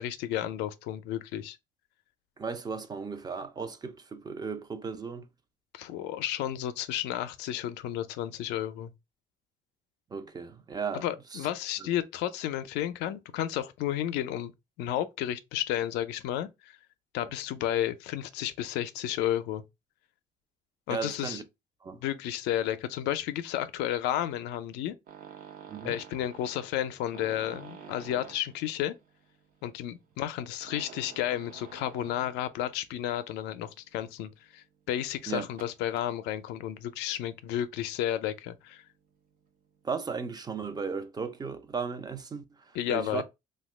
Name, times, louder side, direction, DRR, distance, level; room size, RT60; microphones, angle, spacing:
voice 1, 0.0-1.6 5.7-8.9 10.9-14.5 14.8-16.7 17.1-19.6 20.9-21.4 22.0-24.9 25.8-28.9 29.6-38.8 42.7-43.2, left 12 dB, 90° left, 0.4 m, -32 dB
voice 2, 2.4-5.3 10.1-11.0 11.3-11.5 11.8-11.9 17.2-17.3 20.9-21.4 21.8-22.0 25.7-26.0 35.3-35.5 39.8-42.4 42.9-43.2, right 5 dB, 25° right, 0.4 m, -35 dB
sound 1, 25.1-32.9 33.2-33.4 34.0-34.1 34.3-34.4 35.5-36.1 37.3-37.5 37.9-38.4 39.1-39.2 39.5-39.6 39.8-39.9, right 7 dB, 60° right, 0.7 m, -49 dB
2.8 x 2.2 x 3.1 m
cardioid pair, 110°, 17 cm